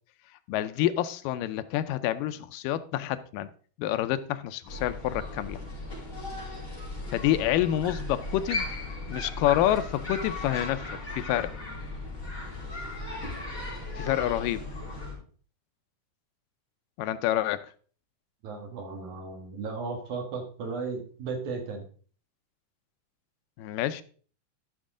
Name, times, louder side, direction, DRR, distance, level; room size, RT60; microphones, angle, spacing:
voice 1, 0.5-3.5 3.8-5.6 7.1-8.8 9.1-10.8 11.1-11.5 14.0-14.6 17.0-17.7 23.6-24.0, left 13 dB, 90° left, 12 dB, 2.3 m, -28 dB
sound 1, 4.7-15.1, left 2 dB, 25° left, 4.6 m, -37 dB
voice 2, 18.4-21.8, right 4 dB, 65° right, 3 dB, 3.0 m, -35 dB
12.5 x 6.1 x 3.7 m, 0.43 s
omnidirectional pair, 3.8 m